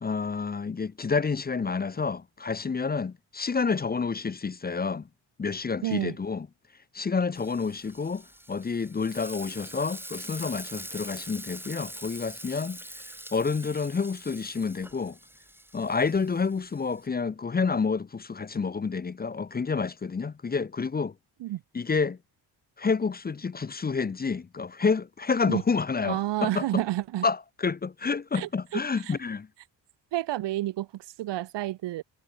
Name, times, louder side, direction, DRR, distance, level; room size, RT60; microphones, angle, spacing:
voice 1, 0.0-5.1 5.4-6.5 6.9-12.8 13.3-15.2 15.7-21.1 21.7-22.2 22.8-26.8 27.2-29.5, left 5 dB, 20° left, 0.6 m, -29 dB
voice 2, 5.8-6.1 21.4-21.6 25.5-25.6 26.0-27.2 28.3-29.2 30.1-32.0, right 15 dB, 80° right, 0.8 m, -30 dB
Frying (food), 7.3-17.1, right 1 dB, 5° right, 5.5 m, -44 dB
cardioid pair, 100°, 42 cm